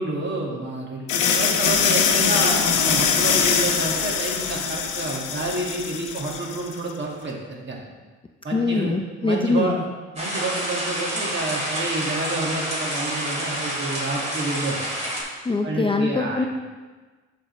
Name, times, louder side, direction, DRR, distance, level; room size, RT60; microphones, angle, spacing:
voice 1, 0.0-7.8 8.4-9.8 10.1-14.8 15.6-16.5, right 2 dB, 35° right, -2 dB, 1.9 m, -29 dB
sound 1, 1.1-6.8, left 6 dB, 80° left, 0.9 m, -22 dB
voice 2, 8.5-9.7 15.4-16.5, left 3 dB, 20° left, 3 dB, 0.5 m, -23 dB
sound 2, 10.2-15.2, right 1 dB, 20° right, 2.4 m, -28 dB
11.0 x 5.2 x 3.2 m, 1.3 s
cardioid pair, 90°, 30 cm